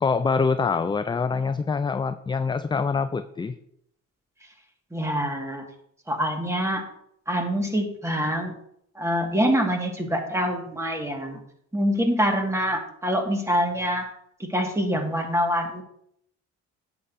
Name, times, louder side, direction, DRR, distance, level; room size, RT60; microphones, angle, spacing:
voice 1, 0.0-3.5, left 5 dB, 15° left, 10 dB, 0.3 m, -25 dB
voice 2, 4.9-5.7 6.1-6.8 7.3-8.5 9.0-11.4 11.7-14.1 14.4-15.8, equal, 10° right, 3 dB, 1.7 m, -25 dB
11.0 x 8.1 x 2.6 m, 0.73 s
cardioid pair, 90°, 30 cm